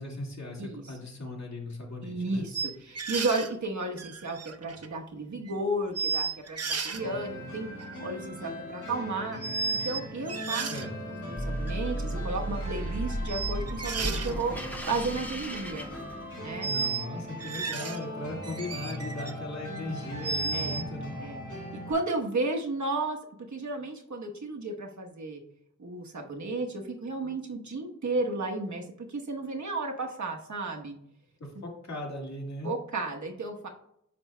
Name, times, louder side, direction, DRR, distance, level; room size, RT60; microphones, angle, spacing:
voice 1, 0.0-2.5 10.6-10.9 16.6-21.1 31.4-32.7, left 1 dB, 65° left, -1 dB, 2.0 m, -38 dB
voice 2, 2.0-7.7 8.0-9.4 9.8-14.6 14.9-15.9 16.4-16.7 20.5-20.8 21.2-23.2 23.5-25.4 25.8-31.0 32.6-33.7, right 2 dB, 75° right, 2 dB, 1.1 m, -33 dB
sound 1, 2.5-3.5 4.0-5.0 5.5-5.6 5.9-7.0 7.8-8.1 9.4-10.0 10.3-10.8 11.7-11.8 13.3-14.3 15.3-15.6 16.6-17.1 17.4-18.0 18.4-19.3 19.7-20.8, right 5 dB, 55° right, 0.6 m, -33 dB
sound 2, 6.9-21.9, equal, 90° left, 2.8 m, -40 dB
sound 3, 11.4-16.7, right 1 dB, 5° left, 0.9 m, -35 dB
9.7 x 5.9 x 2.2 m, 0.73 s
wide cardioid pair, 70°, 30 cm